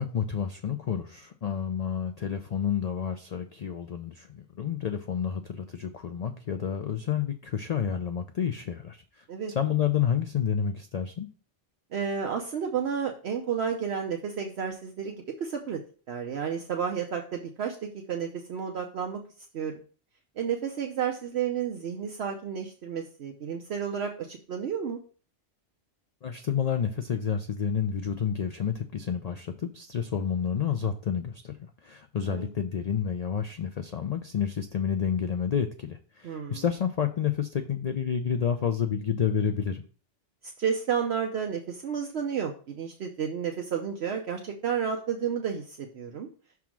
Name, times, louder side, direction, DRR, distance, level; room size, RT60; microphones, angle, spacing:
voice 1, 0.0-11.3 26.2-31.5 31.8-39.8, left 8 dB, 55° left, 7 dB, 0.4 m, -29 dB
voice 2, 11.9-15.8 16.1-17.8 18.1-19.2 19.5-19.7 20.4-25.0 32.2-32.5 36.2-36.6 40.6-46.3, right 7 dB, 65° right, 3 dB, 1.0 m, -31 dB
6.1 x 3.6 x 5.8 m, 0.40 s
omnidirectional pair, 1.2 m